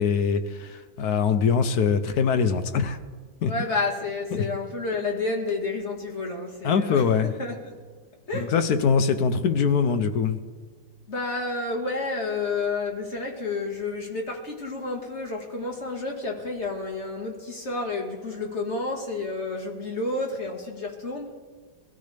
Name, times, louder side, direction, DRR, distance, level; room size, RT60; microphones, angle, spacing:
voice 1, 0.0-3.0 3.4-3.5 4.3-4.5 6.6-7.3 8.3-10.4, left 6 dB, 65° left, 9 dB, 1.1 m, -23 dB
voice 2, 3.5-7.8 8.3-8.5 11.1-21.3, left 3 dB, 40° left, 0 dB, 2.0 m, -30 dB
22.0 x 13.5 x 3.4 m, 1.5 s
omnidirectional pair, 2.0 m